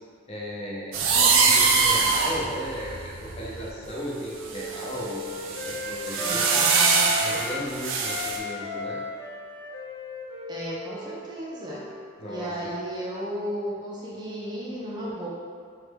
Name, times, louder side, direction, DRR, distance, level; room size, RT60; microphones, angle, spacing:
voice 1, 0.3-6.6 7.2-9.0 12.2-12.6, equal, 30° left, -5 dB, 0.5 m, -35 dB
sound 1, 0.9-3.9 4.5-8.4, right 4 dB, 85° right, 0.4 m, -23 dB
Wind instrument woodwind instrument, 3.1-7.6 8.0-12.5, left 1 dB, 75° left, 0.6 m, -36 dB
voice 2, 6.2-7.5 10.5-11.8 12.3-15.3, right 1 dB, 20° right, -6 dB, 0.4 m, -33 dB
3.1 x 2.2 x 3.3 m, 2.2 s
head